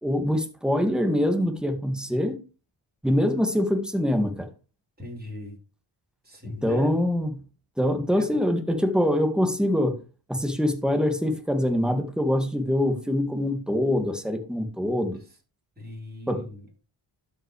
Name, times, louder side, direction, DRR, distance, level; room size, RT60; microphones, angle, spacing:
voice 1, 0.0-2.4 3.0-4.5 6.4-7.3 7.8-10.0 10.3-15.2 16.3-16.5, left 1 dB, ahead, 2.1 m, -24 dB
voice 2, 5.0-5.6 6.2-6.9 8.1-8.4 15.8-16.6, equal, 20° right, 4.5 m, -39 dB
12.0 x 5.6 x 3.3 m
cardioid pair, 55°, 47 cm